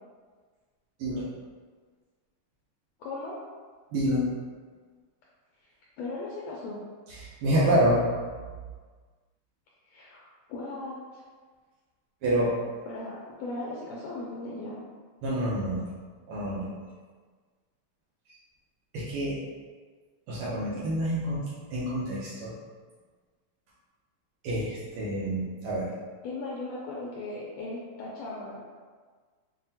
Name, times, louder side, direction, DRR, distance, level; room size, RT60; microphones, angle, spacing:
voice 1, 3.0-3.4 6.0-6.8 9.9-10.2 10.5-11.2 12.8-14.8 26.2-28.6, left 2 dB, 80° left, -5 dB, 1.6 m, -37 dB
voice 2, 3.9-4.3 7.1-8.1 12.2-12.5 15.2-15.9 16.3-16.7 18.9-19.4 20.3-22.5 24.4-25.9, equal, 80° right, -8 dB, 1.2 m, -27 dB
5.7 x 2.1 x 2.7 m, 1.5 s
omnidirectional pair, 3.4 m